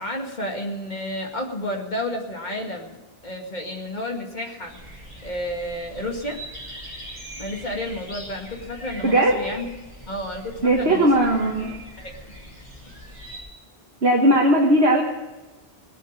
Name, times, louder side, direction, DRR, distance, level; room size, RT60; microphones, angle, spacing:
voice 1, 0.0-3.0 3.2-4.8 5.2-6.4 7.4-9.6 10.1-11.1 12.0-12.1, left 1 dB, 45° left, 2 dB, 2.2 m, -31 dB
sound 1, 4.7-13.4, equal, 30° left, 6.4 m, -42 dB
voice 2, 9.0-9.4 10.6-11.8 14.0-15.0, right 1 dB, 70° right, -1 dB, 1.8 m, -18 dB
18.5 x 8.5 x 7.4 m, 1.1 s
omnidirectional pair, 1.1 m